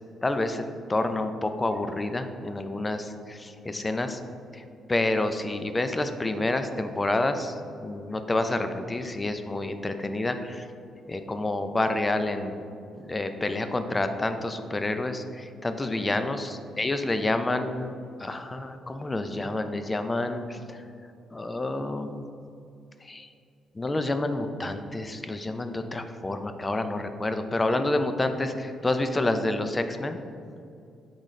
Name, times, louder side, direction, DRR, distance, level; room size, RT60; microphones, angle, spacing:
voice 1, 0.2-0.6 0.9-4.2 4.5-4.6 4.9-10.7 11.1-12.6 13.0-17.9 18.2-20.8 21.3-22.2 23.0-23.3 23.7-30.2, left 2 dB, 20° left, 8 dB, 0.5 m, -28 dB
10.0 x 3.9 x 3.2 m, 2.5 s
cardioid pair, 90°, 0 cm